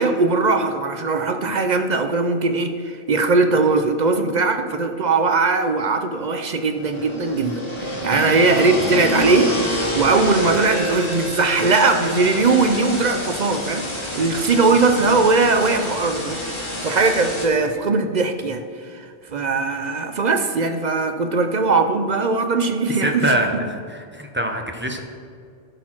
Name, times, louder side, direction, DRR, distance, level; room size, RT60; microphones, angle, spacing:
voice 1, 0.0-13.9 14.2-23.4, right 3 dB, 50° right, 7 dB, 0.6 m, -20 dB
sound 1, 6.7-17.5, equal, 25° left, 1.6 m, -27 dB
voice 2, 23.0-25.0, right 1 dB, 10° right, 3 dB, 0.7 m, -24 dB
12.5 x 4.4 x 5.9 m, 2.3 s
omnidirectional pair, 1.1 m